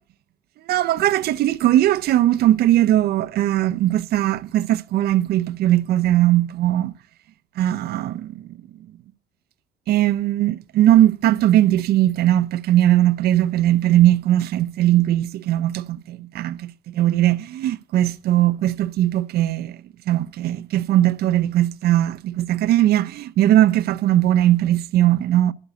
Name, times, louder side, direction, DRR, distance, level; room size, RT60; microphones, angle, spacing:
voice 1, 0.7-6.9 7.6-8.5 9.9-19.8 20.1-25.5, right 13 dB, 70° right, 0.6 m, -19 dB
12.0 x 7.0 x 6.7 m
cardioid pair, 110°, 17 cm